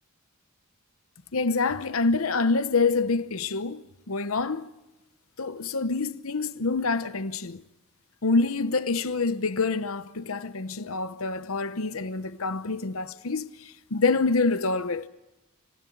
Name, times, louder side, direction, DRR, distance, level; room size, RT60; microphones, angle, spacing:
voice 1, 1.3-4.7 5.4-7.6 8.2-15.1, left 3 dB, 65° left, 0.9 m, -26 dB
27.0 x 17.0 x 9.2 m
head